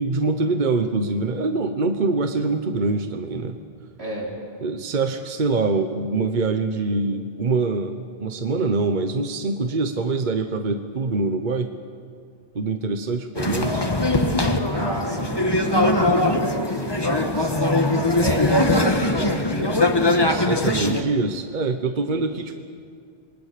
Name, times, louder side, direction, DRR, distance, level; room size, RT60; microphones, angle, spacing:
voice 1, 0.0-3.6 4.6-11.7 12.5-13.9 20.3-22.6, right 3 dB, 50° right, 7 dB, 1.1 m, -24 dB
voice 2, 4.0-4.3 14.7-20.4 22.1-22.3, right 1 dB, 90° right, -3 dB, 5.3 m, -33 dB
sound 1, 13.4-21.0, left 2 dB, 25° left, 1.4 m, -21 dB
27.5 x 22.5 x 6.8 m, 2.2 s
omnidirectional pair, 1.0 m